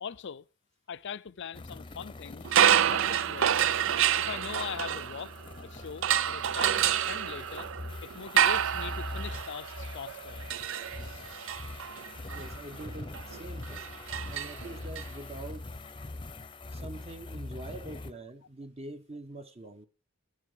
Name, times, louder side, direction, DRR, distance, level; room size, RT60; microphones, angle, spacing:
voice 1, 0.0-0.5 0.9-2.5 2.8-3.5 4.2-5.3 5.6-7.7 8.0-10.4, left 7 dB, 60° left, 0.5 m, -41 dB
sound 1, 1.5-18.1, left 2 dB, 25° left, 0.8 m, -43 dB
sound 2, 2.4-5.5 6.0-15.0, right 9 dB, 65° right, 0.5 m, -28 dB
voice 2, 12.3-13.9 14.3-15.7 16.7-19.9, right 2 dB, 30° right, 1.2 m, -44 dB
12.0 x 10.5 x 5.1 m
head